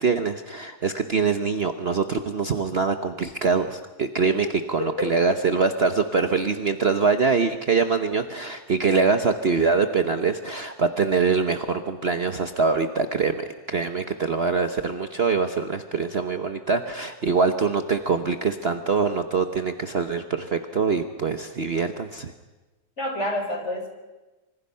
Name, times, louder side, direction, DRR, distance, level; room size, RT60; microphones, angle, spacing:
voice 1, 0.0-22.3, right 4 dB, 45° right, 7 dB, 1.1 m, -24 dB
voice 2, 4.4-5.1 23.0-23.9, left 1 dB, 45° left, 3 dB, 4.5 m, -29 dB
26.5 x 25.0 x 5.7 m, 1.1 s
omnidirectional pair, 1.7 m